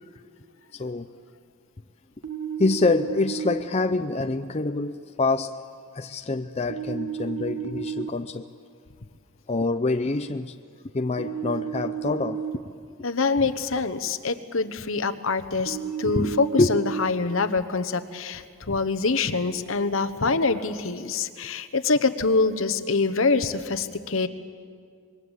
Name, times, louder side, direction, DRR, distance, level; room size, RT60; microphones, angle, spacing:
voice 1, 0.7-1.1 2.6-5.5 5.9-8.5 9.5-10.6 10.9-12.4 16.2-16.8, left 3 dB, 30° left, 0.5 m, -26 dB
sound 1, 2.2-3.6 6.7-8.1 11.2-12.6 15.7-17.0, right 8 dB, 90° right, 1.7 m, -32 dB
voice 2, 13.0-24.3, left 4 dB, 65° left, 1.1 m, -25 dB
26.0 x 22.0 x 8.2 m
head